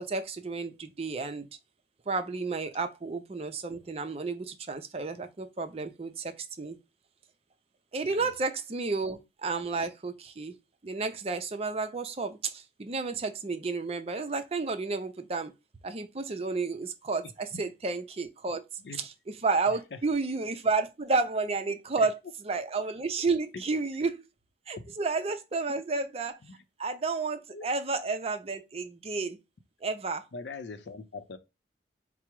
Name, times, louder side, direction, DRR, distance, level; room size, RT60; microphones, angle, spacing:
voice 1, 0.0-1.5 2.1-6.8 7.9-10.5 10.8-15.5 15.8-18.6 18.9-22.1 22.4-24.2 24.7-26.4 26.8-29.4 29.8-30.2, right 4 dB, 35° right, 0.5 m, -31 dB
voice 2, 19.7-20.0 22.0-22.1 23.5-23.6 24.8-25.0 26.5-26.6 27.5-27.7 30.3-31.4, left 4 dB, 70° left, 0.6 m, -42 dB
4.6 x 2.0 x 4.5 m
head